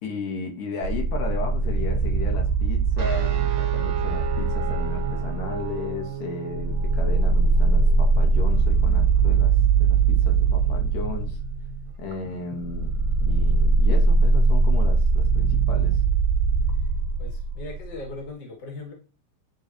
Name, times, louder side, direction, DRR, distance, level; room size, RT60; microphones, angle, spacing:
voice 1, 0.0-11.4 12.0-12.9 13.3-16.0, left 4 dB, 75° left, 2.7 m, -35 dB
sound 1, 0.8-6.0 6.5-18.0, right 4 dB, 80° right, 2.5 m, -21 dB
sound 2, 3.0-11.9, right 9 dB, 65° right, 2.3 m, -36 dB
voice 2, 10.5-10.8 17.2-18.9, left 2 dB, 35° left, 2.0 m, -39 dB
9.9 x 3.9 x 2.9 m
omnidirectional pair, 3.9 m